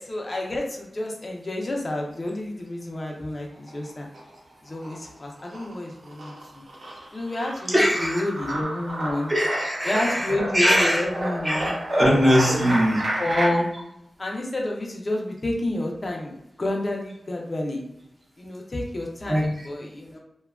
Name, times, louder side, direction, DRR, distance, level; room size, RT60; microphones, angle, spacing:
voice 1, 0.0-4.1 4.7-6.3 7.1-9.3 9.9-11.7 12.5-12.8 13.2-13.7 14.2-17.8 18.4-20.2, left 1 dB, 30° left, 0 dB, 0.5 m, -29 dB
sound 1, 3.5-4.4 4.7-13.5, right 1 dB, 75° right, 0.8 m, -31 dB
voice 2, 7.7-8.3 9.3-11.1 11.4-13.0 19.3-19.7, equal, 25° right, -3 dB, 0.6 m, -22 dB
2.7 x 2.2 x 2.3 m, 0.81 s
wide cardioid pair, 130°, 0 cm